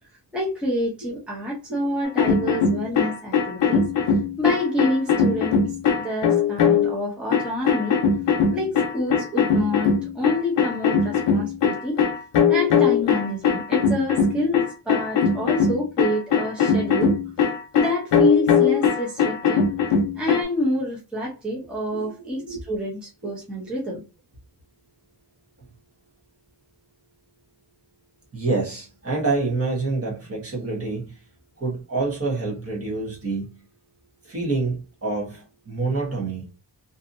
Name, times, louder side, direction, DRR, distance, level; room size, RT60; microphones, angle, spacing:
voice 1, 0.3-3.9 4.4-8.0 8.5-12.0 12.5-17.2 17.8-19.7 20.1-24.0, left 1 dB, ahead, 0.6 m, -27 dB
sound 1, 2.1-7.0 7.3-20.4, left 6 dB, 80° left, 0.7 m, -20 dB
voice 2, 21.9-22.6 28.3-31.1 31.6-33.5 34.2-36.5, right 3 dB, 35° right, 1.0 m, -27 dB
2.6 x 2.6 x 2.5 m
wide cardioid pair, 175°, 42 cm